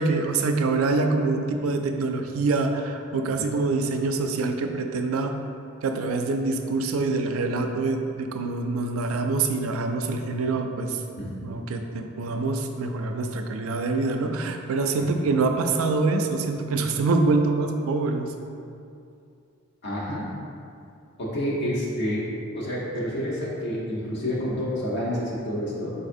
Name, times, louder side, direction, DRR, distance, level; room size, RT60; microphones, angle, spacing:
voice 1, 0.0-5.4 5.8-11.0 11.4-18.3, right 3 dB, 85° right, 5 dB, 0.4 m, -25 dB
voice 2, 19.8-20.3 21.2-22.2 22.5-25.9, equal, 55° left, -6 dB, 1.1 m, -29 dB
4.8 x 4.1 x 2.6 m, 2.5 s
head